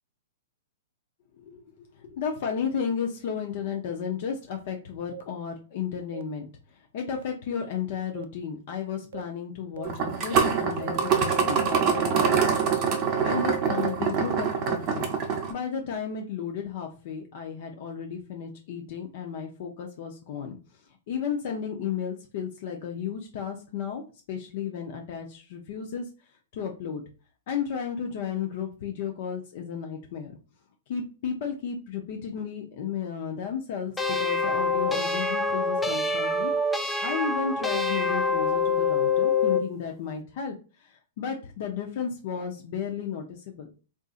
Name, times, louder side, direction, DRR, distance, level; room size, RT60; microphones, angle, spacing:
voice 1, 1.4-12.6 13.0-20.8 21.1-24.0 24.3-27.0 27.5-30.4 30.9-36.5 37.0-43.7, left 7 dB, 50° left, 3 dB, 0.6 m, -33 dB
sound 1, 5.1-5.2 6.1-6.2 7.1-7.2 8.2-8.3 9.1-9.2 9.8-9.9 10.3-10.4 10.8-14.0, right 11 dB, 70° right, 0.4 m, -38 dB
sound 2, 9.8-15.5, right 6 dB, 30° right, 0.7 m, -24 dB
sound 3, 34.0-39.7, left 3 dB, 5° left, 0.3 m, -25 dB
3.7 x 2.6 x 2.4 m, 0.35 s
hypercardioid pair, 150°, 0 cm